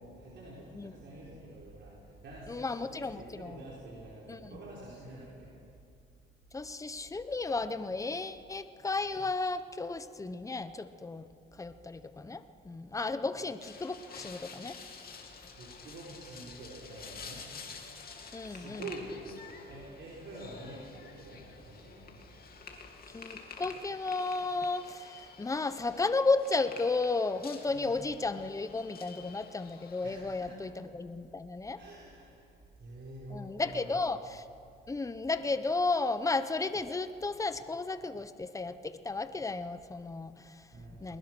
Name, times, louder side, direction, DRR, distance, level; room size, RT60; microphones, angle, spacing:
voice 1, 0.0-5.5 15.5-17.5 18.4-22.3 27.7-27.9 30.0-30.5 31.7-32.5 32.8-34.0 40.7-41.2, right 2 dB, 65° right, -5 dB, 4.6 m, -47 dB
voice 2, 2.5-3.6 4.3-4.6 6.5-11.2 11.6-14.8 18.3-18.9 23.1-31.8 33.3-34.4 34.9-40.5 41.0-41.2, left 3 dB, 15° left, 11 dB, 0.9 m, -33 dB
sound 1, 13.6-30.4, left 5 dB, 50° left, 2.7 m, -49 dB
21.0 x 20.5 x 6.2 m, 2.4 s
cardioid pair, 90°, 20 cm